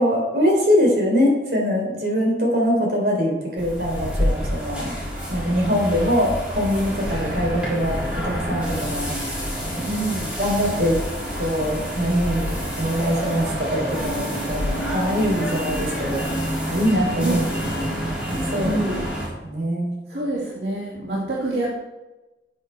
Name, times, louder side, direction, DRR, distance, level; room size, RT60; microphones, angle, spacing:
voice 1, 0.0-4.9 5.3-9.1 10.4-11.0 11.4-16.3 16.7-18.8 19.4-20.0, equal, 60° right, -1 dB, 3.5 m, -23 dB
sound 1, 3.6-19.3, equal, 5° right, 4.0 m, -28 dB
voice 2, 9.8-10.4 17.1-17.7 18.6-19.0 20.1-21.7, right 1 dB, 80° right, -6 dB, 2.5 m, -27 dB
13.5 x 8.3 x 3.4 m, 1.0 s
head